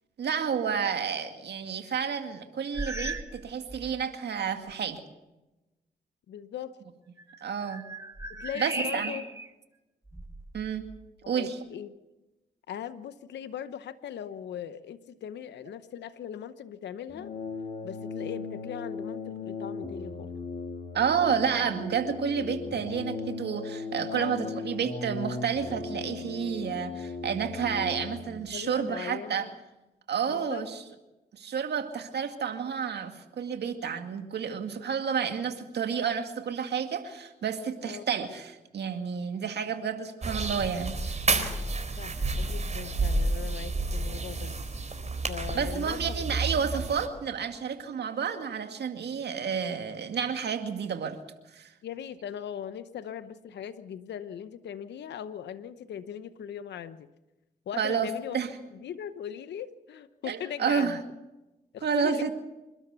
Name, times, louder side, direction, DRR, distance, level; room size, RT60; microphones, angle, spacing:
voice 1, 0.2-5.0 7.4-7.8 8.6-9.1 10.5-10.8 11.3-11.6 20.9-29.5 30.1-30.8 31.3-41.3 45.5-51.2 51.5-51.7 57.8-58.5 60.2-61.0 61.8-62.3, right 7 dB, 70° right, 6 dB, 2.2 m, -30 dB
sound 1, 2.7-3.4 3.7-4.0 4.7-4.8 7.2-9.5 10.1-11.1, right 2 dB, 15° right, 2.5 m, -37 dB
voice 2, 6.3-6.8 8.3-9.2 11.2-12.0 12.7-17.3 17.8-20.3 22.5-22.8 24.1-24.6 28.5-29.5 30.3-30.6 37.8-38.0 42.0-44.5 45.3-46.7 51.8-57.1 57.7-58.4 58.7-61.0 61.7-62.3, left 9 dB, 80° left, 13 dB, 0.9 m, -39 dB
sound 2, 17.1-28.4, left 4 dB, 50° left, 2.7 m, -37 dB
sound 3, 40.2-47.1, right 3 dB, 40° right, 4.2 m, -30 dB
27.0 x 12.5 x 8.2 m, 1.0 s
supercardioid pair, 50°, 18 cm